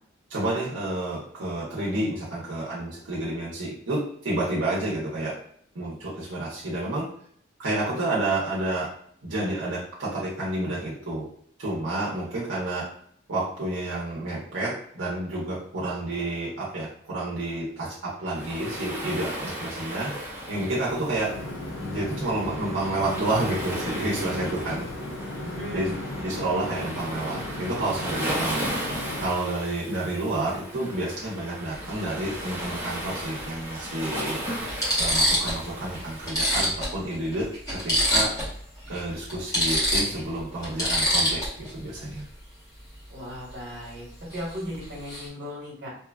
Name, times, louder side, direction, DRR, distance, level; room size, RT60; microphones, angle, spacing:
voice 1, 0.3-5.3 5.7-7.1 7.6-8.9 9.2-11.3 11.6-12.9 13.3-20.1 20.5-21.3 21.8-24.9 25.7-25.9 26.2-28.9 29.2-34.4 35.0-38.3 38.9-42.2, right 2 dB, 80° right, -6 dB, 0.7 m, -30 dB
Waves surf, 18.3-36.3, right 1 dB, 10° right, 0.5 m, -36 dB
sound 1, 21.2-29.3, left 1 dB, 65° left, 0.5 m, -36 dB
voice 2, 25.4-26.0 43.1-44.0 44.3-45.9, equal, 55° right, -5 dB, 1.1 m, -36 dB
sound 2, 31.9-32.0 33.4-33.5 34.2-34.3 34.7-35.6 35.9-36.0 36.3-38.6 38.9-39.0 39.3-41.7 44.3-44.5 44.8-45.3, equal, 15° left, 0.8 m, -25 dB
2.9 x 2.2 x 2.3 m, 0.63 s
head